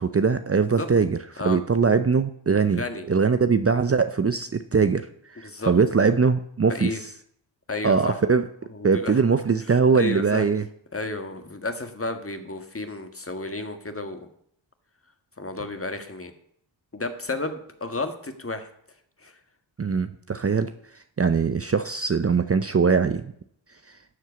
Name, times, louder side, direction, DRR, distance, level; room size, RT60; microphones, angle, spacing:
voice 1, 0.0-6.9 7.8-8.4 8.8-10.6 19.8-20.7 21.2-23.3, right 5 dB, 30° right, 10 dB, 0.7 m, -22 dB
voice 2, 0.5-0.9 1.4-1.6 2.8-3.0 5.4-5.7 6.7-7.0 7.7-8.2 8.7-9.2 9.9-10.5 10.9-14.3 15.4-16.3 16.9-18.7 19.2-19.3, left 2 dB, 30° left, 7 dB, 1.7 m, -32 dB
12.5 x 4.6 x 8.2 m, 0.66 s
cardioid pair, 40°, 47 cm